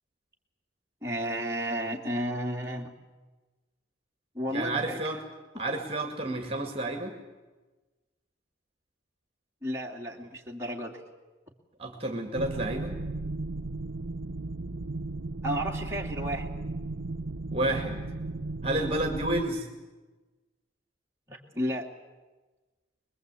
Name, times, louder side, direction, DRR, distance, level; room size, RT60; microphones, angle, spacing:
voice 1, 1.0-2.9 4.3-5.0 5.5-5.6 9.6-11.0 15.4-16.5 21.3-21.9, equal, 15° right, -1 dB, 2.5 m, -32 dB
voice 2, 4.5-5.2 5.6-7.1 11.8-13.0 17.5-18.0 18.6-19.7, right 2 dB, 30° right, 4 dB, 2.2 m, -30 dB
sound 1, 12.4-19.4, right 2 dB, 75° right, 0.7 m, -35 dB
24.5 x 22.0 x 8.4 m, 1.2 s
head